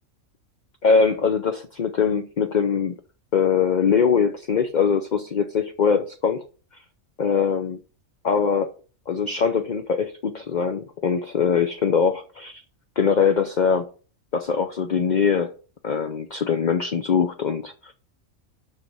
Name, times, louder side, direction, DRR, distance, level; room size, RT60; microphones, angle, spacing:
voice 1, 0.8-2.9 3.3-6.4 7.2-7.8 8.2-8.7 9.1-12.6 13.0-13.9 14.3-15.5 15.8-17.9, left 6 dB, 45° left, 0.7 m, -22 dB
6.3 x 6.2 x 5.4 m
omnidirectional pair, 1.4 m